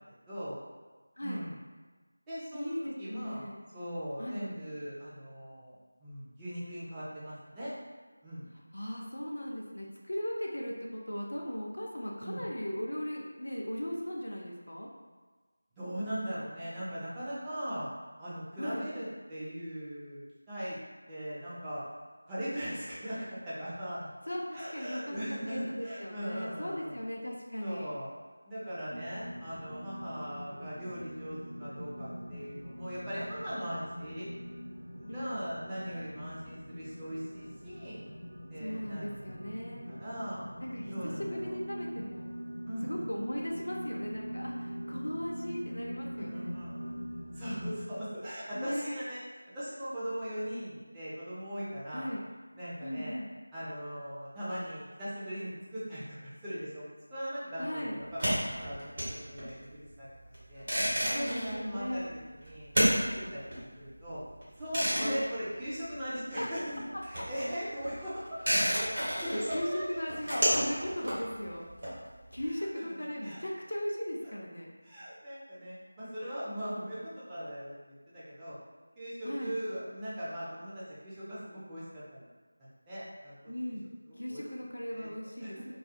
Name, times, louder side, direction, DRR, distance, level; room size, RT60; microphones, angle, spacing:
voice 1, 0.3-0.6 1.2-1.6 2.3-2.7 3.0-3.5 3.7-7.7 8.2-8.4 12.2-12.5 15.8-17.9 18.2-20.8 21.1-21.8 22.3-24.1 24.5-27.0 27.6-28.1 28.5-34.3 34.9-38.1 38.5-39.3 39.9-40.5 40.9-41.5 42.7-43.0 46.3-47.0 47.3-49.2 49.5-52.1 52.5-53.2 53.5-56.8 57.1-60.1 60.5-60.6 61.1-62.1 62.4-62.7 63.3-63.4 63.8-64.2 64.6-68.6 68.9-69.8 70.8-70.9 72.5-72.8 73.2-73.4 74.8-77.7 78.1-78.6 79.0-81.8 82.1-82.3 82.9-83.5 84.3-84.4 84.9-85.1 85.4-85.7, equal, 10° right, -12 dB, 0.4 m, -39 dB
voice 2, 1.2-1.5 2.5-3.6 4.2-4.4 8.7-14.9 18.6-18.9 24.3-27.9 35.1-35.4 38.6-39.8 40.6-42.3 42.8-46.5 48.5-49.0 51.9-52.2 52.8-53.3 57.6-58.0 61.1-62.1 65.0-65.3 66.4-66.5 67.2-67.3 69.5-71.7 72.3-74.7 79.2-79.6 83.5-83.8 84.2-85.6, equal, 70° left, -2 dB, 0.4 m, -37 dB
sound 1, 28.9-47.8, equal, 80° right, 0.4 m, -42 dB
sound 2, 58.0-66.4 66.6-72.4, equal, 45° right, 1.0 m, -32 dB
2.3 x 2.3 x 2.5 m, 1.3 s
figure-of-eight pair, 170°, 0 cm